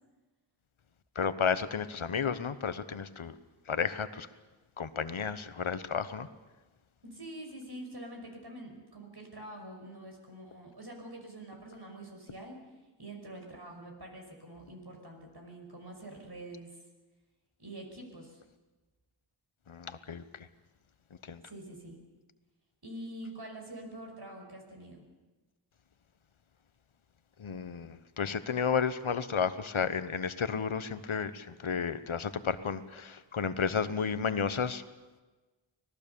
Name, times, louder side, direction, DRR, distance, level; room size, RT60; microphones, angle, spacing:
voice 1, 1.1-3.3 3.7-4.3 4.8-6.3 19.7-20.5 21.2-21.4 27.4-34.8, left 6 dB, 80° left, 13 dB, 1.1 m, -32 dB
voice 2, 7.0-12.6 13.0-16.8 17.6-18.4 21.4-22.0 22.8-25.0, right 1 dB, 55° right, 2 dB, 5.6 m, -46 dB
25.0 x 18.5 x 7.0 m, 1.2 s
wide cardioid pair, 55°, 48 cm